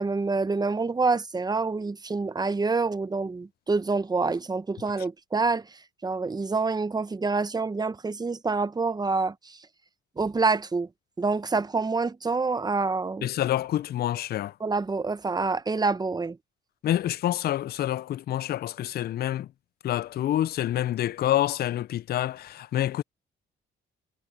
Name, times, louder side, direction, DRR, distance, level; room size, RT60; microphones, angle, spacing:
voice 1, 0.0-9.6 10.2-10.9 11.2-13.3 14.6-16.4, right 4 dB, 20° right, 0.8 m, -27 dB
voice 2, 13.2-14.5 16.8-19.5 19.8-23.0, left 12 dB, 55° left, 0.4 m, -27 dB
cardioid pair, 90°, 20 cm